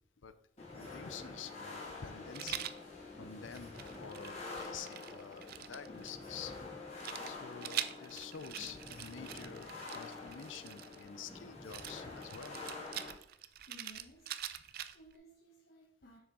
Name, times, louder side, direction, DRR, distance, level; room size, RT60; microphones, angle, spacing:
sound 1, 0.6-13.1, left 3 dB, 35° left, 1.9 m, -47 dB
voice 1, 0.7-6.5 7.2-12.6, left 7 dB, 85° left, 12 dB, 0.6 m, -49 dB
Rattle, 2.3-2.8 3.5-6.1 7.0-11.1 11.7-15.2, right 11 dB, 50° right, 0.4 m, -44 dB
voice 2, 13.4-16.2, equal, 55° left, -1 dB, 1.2 m, -59 dB
7.1 x 6.1 x 3.7 m, 0.71 s
head